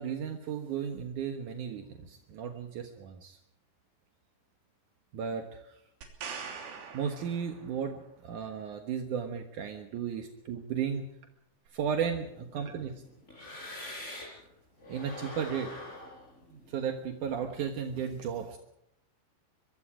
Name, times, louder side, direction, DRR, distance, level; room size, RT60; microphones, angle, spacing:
voice 1, 0.0-3.4 5.1-5.8 6.9-11.1 11.7-13.0 14.9-15.7 16.5-18.6, right 7 dB, 70° right, 4 dB, 1.9 m, -35 dB
sound 1, 6.0-8.0 11.7-11.8, right 6 dB, 90° right, 5.6 m, -43 dB
sound 2, 11.8-14.5 14.8-17.9, left 1 dB, 15° left, 5.4 m, -45 dB
24.0 x 23.5 x 5.0 m, 0.77 s
omnidirectional pair, 5.5 m